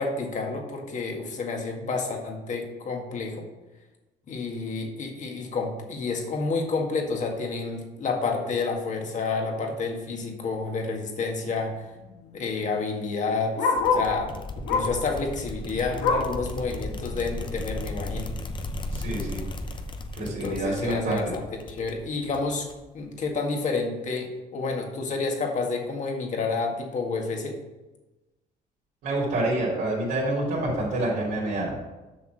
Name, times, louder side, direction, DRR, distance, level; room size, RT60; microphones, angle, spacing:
voice 1, 0.0-3.5 4.3-11.8 12.3-18.3 20.2-22.7 22.9-27.6, left 4 dB, 45° left, 2 dB, 1.9 m, -29 dB
Bark, 10.4-10.7 11.0-11.1 11.3-14.2 14.6-15.1 15.4-16.4 16.9-17.0 17.4-17.5 18.2-18.3, left 4 dB, 80° left, 1.8 m, -27 dB
sound 1, 13.8-23.0, left 2 dB, 30° left, 0.8 m, -36 dB
voice 2, 18.9-19.4 20.1-21.2 29.0-31.8, right 1 dB, 75° right, -6 dB, 3.2 m, -27 dB
7.0 x 6.0 x 6.3 m, 1.1 s
cardioid pair, 110°, 17 cm